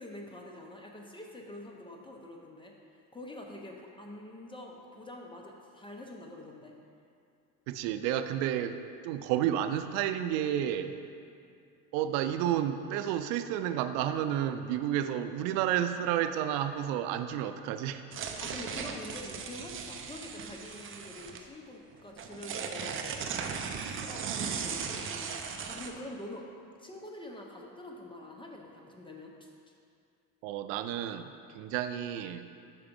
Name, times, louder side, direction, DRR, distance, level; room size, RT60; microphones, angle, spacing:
voice 1, 0.0-6.8 18.2-23.1 23.7-26.5 26.8-29.5, left 1 dB, 15° left, 0 dB, 0.7 m, -46 dB
voice 2, 7.7-8.8 9.0-10.9 11.9-18.0 30.4-32.5, right 11 dB, 85° right, 9 dB, 0.5 m, -31 dB
sound 1, 18.1-21.4 21.9-25.9, right 6 dB, 35° right, 0.5 m, -37 dB
5.9 x 4.8 x 5.2 m, 2.4 s
cardioid pair, 115°, 38 cm